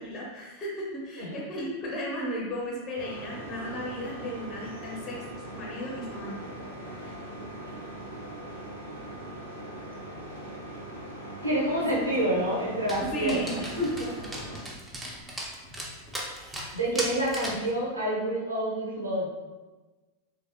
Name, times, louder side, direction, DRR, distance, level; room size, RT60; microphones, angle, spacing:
voice 1, 0.0-5.2 5.5-6.4 11.9-12.0 13.0-13.6, equal, 25° left, -2 dB, 0.8 m, -35 dB
sound 1, 3.0-14.6, right 1 dB, 90° left, 0.8 m, -41 dB
voice 2, 11.4-14.1 16.7-19.3, right 1 dB, 80° right, -5 dB, 0.9 m, -28 dB
Dog, 12.9-17.7, right 1 dB, 10° right, 0.6 m, -38 dB
3.2 x 2.8 x 2.7 m, 1.2 s
figure-of-eight pair, 90°, 0 cm